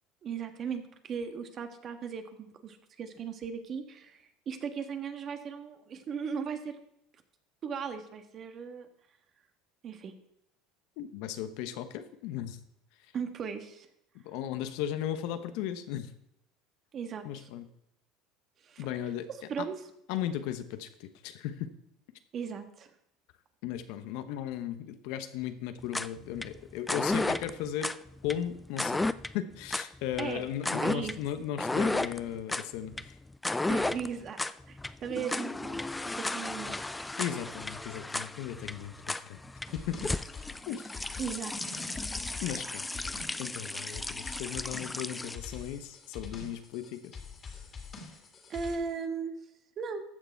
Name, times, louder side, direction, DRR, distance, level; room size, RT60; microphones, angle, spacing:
voice 1, 0.2-6.8 7.6-8.9 9.8-10.1 13.1-13.9 16.9-17.5 18.6-18.9 19.5-19.7 22.3-22.9 30.2-30.4 30.8-31.1 33.7-34.4 34.7-37.3 41.2-41.8 48.5-49.3 49.8-50.0, right 6 dB, 40° right, 7 dB, 1.4 m, -37 dB
voice 2, 11.0-12.6 14.2-16.1 17.2-17.7 18.8-19.3 19.6-19.7 20.1-21.7 23.6-27.9 28.2-29.0 29.3-33.2 37.2-39.4 39.7-40.1 40.7-40.9 42.4-42.9 43.4-47.2, left 10 dB, 70° left, 10 dB, 0.9 m, -36 dB
sound 1, 25.8-45.4, left 2 dB, 10° left, 0.4 m, -34 dB
sound 2, 39.6-48.8, left 5 dB, 30° left, 2.4 m, -45 dB
13.5 x 6.8 x 4.6 m, 0.78 s
supercardioid pair, 105°, 0 cm